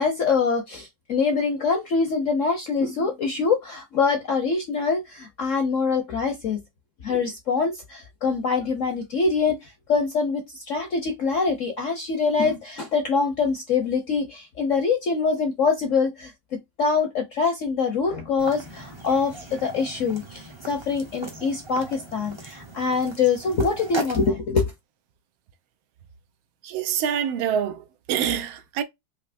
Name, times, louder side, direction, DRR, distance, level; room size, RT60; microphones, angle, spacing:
voice 1, 0.0-6.6 7.0-24.7, left 5 dB, 60° left, 0.8 m, -24 dB
sound 1, 18.4-24.3, right 1 dB, 45° right, 0.3 m, -38 dB
voice 2, 26.6-28.8, right 8 dB, 80° right, 1.5 m, -26 dB
4.6 x 2.8 x 2.5 m
omnidirectional pair, 2.2 m